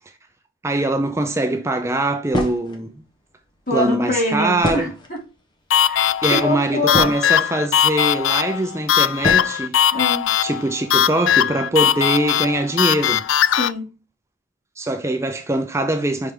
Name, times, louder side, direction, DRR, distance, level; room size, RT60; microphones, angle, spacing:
voice 1, 0.6-2.9 3.7-4.9 6.2-9.8 10.4-13.2 14.8-16.3, right 1 dB, 15° right, 0.5 m, -22 dB
sound 1, 2.3-2.8 4.6-5.3 6.2-6.3 6.6-7.5 8.4-8.5 9.2-9.6, equal, 25° left, 1.2 m, -26 dB
voice 2, 3.7-5.2 5.9-7.1 9.9-10.3 13.5-13.9, left 1 dB, 45° left, 2.9 m, -24 dB
sound 2, 5.7-13.7, left 10 dB, 80° left, 0.4 m, -19 dB
5.4 x 4.8 x 3.7 m
head